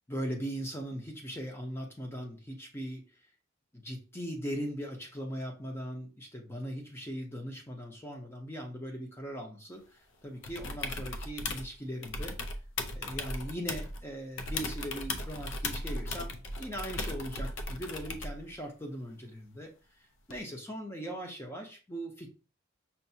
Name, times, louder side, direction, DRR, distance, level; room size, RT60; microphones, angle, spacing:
voice 1, 0.1-3.1 3.7-12.6 12.9-19.7 20.3-22.3, equal, 10° left, 1 dB, 0.7 m, -39 dB
sound 1, 10.4-11.7 12.0-14.0 14.4-18.4 20.3-20.4, left 2 dB, 70° left, 0.6 m, -37 dB
5.6 x 2.6 x 2.7 m, 0.33 s
head